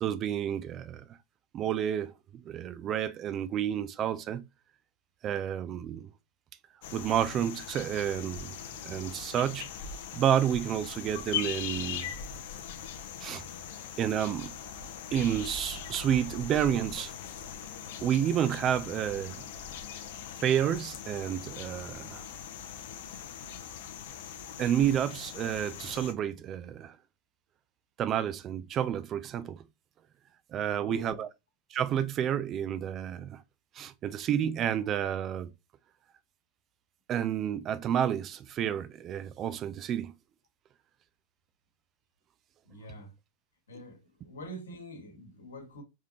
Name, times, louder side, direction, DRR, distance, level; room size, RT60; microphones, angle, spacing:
voice 1, 0.0-1.0 1.5-2.1 2.5-4.4 5.2-6.1 6.9-8.6 8.8-9.7 10.1-12.1 13.2-13.4 14.0-14.5 15.1-17.1 18.0-19.4 20.4-22.2 24.6-26.9 28.0-29.6 30.5-31.3 31.7-33.4 33.7-35.5 37.1-40.1, right 10 dB, 30° right, 0.4 m, -30 dB
sound 1, 6.8-26.1, left 8 dB, 55° left, 0.8 m, -41 dB
voice 2, 30.7-31.2 42.6-43.1 43.7-45.8, equal, 70° left, 1.6 m, -45 dB
4.7 x 3.6 x 2.7 m
figure-of-eight pair, 90°, 0 cm